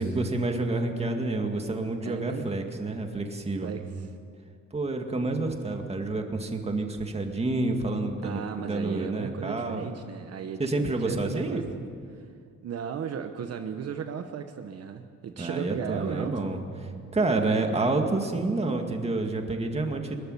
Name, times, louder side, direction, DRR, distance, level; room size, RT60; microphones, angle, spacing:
voice 1, 0.0-3.7 4.7-9.8 10.6-11.6 15.4-16.6 17.1-20.2, right 2 dB, 20° right, 4 dB, 2.1 m, -28 dB
voice 2, 2.0-2.5 3.6-4.1 8.2-11.6 12.1-12.3 12.6-16.5, right 7 dB, 55° right, 6 dB, 1.1 m, -35 dB
23.0 x 14.0 x 9.8 m, 2.2 s
cardioid pair, 145°, 30 cm